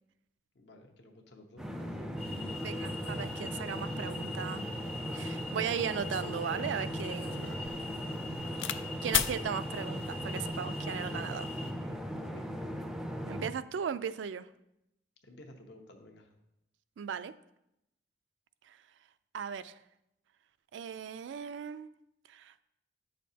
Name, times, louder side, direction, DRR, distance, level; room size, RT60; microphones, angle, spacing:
voice 1, 0.5-2.2 7.4-7.8 8.3-8.6 12.2-12.4 15.2-16.3, left 1 dB, 65° left, 4 dB, 1.0 m, -53 dB
sound 1, 1.6-13.5, equal, 5° right, 0.4 m, -38 dB
sound 2, 2.2-11.7, left 3 dB, 35° left, 0.8 m, -45 dB
voice 2, 2.6-4.7 5.1-7.5 9.0-11.5 13.3-14.5 17.0-17.3 18.7-18.8 19.3-19.8 20.7-21.9 22.3-22.5, right 7 dB, 75° right, 14 dB, 0.3 m, -37 dB
sound 3, 6.0-8.8 9.1-9.4 10.2-10.6, left 11 dB, 85° left, 0.3 m, -36 dB
9.1 x 6.4 x 2.8 m, 0.85 s
head